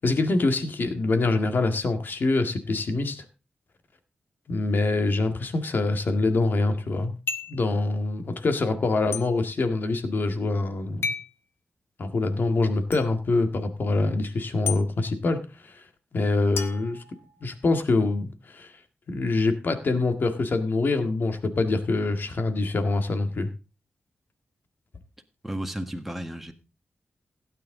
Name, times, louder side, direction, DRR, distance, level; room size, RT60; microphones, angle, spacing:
voice 1, 0.0-3.2 4.5-7.1 7.5-11.1 12.0-15.8 16.1-17.0 17.4-18.7 19.1-23.5, left 3 dB, 50° left, 1.8 m, -25 dB
sound 1, 7.3-7.6 9.1-9.3 11.0-11.3 12.9-13.0 14.7-14.8 16.6-17.6, left 5 dB, 70° left, 1.4 m, -32 dB
voice 2, 25.4-26.5, right 1 dB, 5° right, 1.6 m, -33 dB
16.5 x 9.3 x 3.8 m
wide cardioid pair, 130°, 4 cm